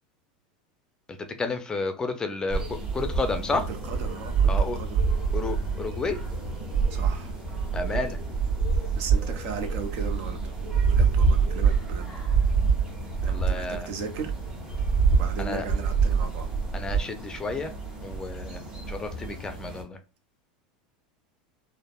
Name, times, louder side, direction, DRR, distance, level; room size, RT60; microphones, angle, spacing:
voice 1, 1.1-3.6 4.5-4.8 5.3-6.2 7.7-8.2 13.3-13.9 15.4-15.6 16.7-17.7 18.0-18.6 18.9-20.0, left 3 dB, 20° left, 0.5 m, -31 dB
sound 1, 2.5-19.8, right 5 dB, 25° right, 1.5 m, -26 dB
voice 2, 3.5-5.0 6.9-7.4 8.9-10.5 10.8-12.1 13.2-14.3 15.1-16.5, right 5 dB, 60° right, 0.6 m, -37 dB
3.3 x 2.0 x 2.3 m
supercardioid pair, 110°, 4 cm